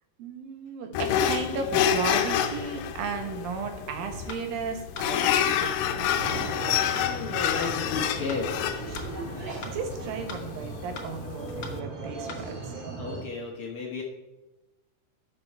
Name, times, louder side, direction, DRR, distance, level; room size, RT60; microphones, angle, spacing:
voice 1, 0.2-5.3 5.6-6.1 8.9-12.7, right 5 dB, 80° right, 5 dB, 2.9 m, -35 dB
sound 1, 0.9-11.8, left 9 dB, 90° left, 2.4 m, -28 dB
sound 2, 4.3-4.4 5.0-5.1 5.6-5.8 6.3-6.4 7.0-7.1 7.6-7.8 8.3-8.4 9.0-9.1 9.6-9.8 10.3-10.4 11.0-11.1 11.6-11.8 12.3-12.4, left 4 dB, 70° left, 1.1 m, -39 dB
sound 3, 6.1-13.2, right 2 dB, 40° right, 2.0 m, -38 dB
voice 2, 7.0-8.5 13.0-14.0, left 4 dB, 55° left, -1 dB, 1.7 m, -33 dB
12.0 x 6.3 x 4.6 m, 1.0 s
omnidirectional pair, 4.0 m